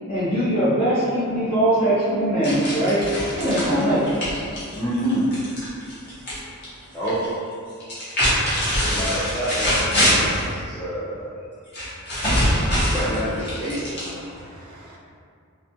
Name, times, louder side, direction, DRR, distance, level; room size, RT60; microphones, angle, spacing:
voice 1, 0.1-3.0 3.4-4.0, right 1 dB, 85° left, 0.8 m, -21 dB
sound 1, 2.4-6.4 6.6-7.2 7.8-10.5 11.7-14.4, equal, 50° left, 0.8 m, -23 dB
voice 2, 4.7-5.3 6.9-7.3 8.8-11.3 12.8-14.2, equal, 10° left, 0.3 m, -27 dB
voice 3, 8.2-9.0 12.4-12.9 14.2-15.0, right 1 dB, 75° right, 0.5 m, -47 dB
2.3 x 2.1 x 2.7 m
head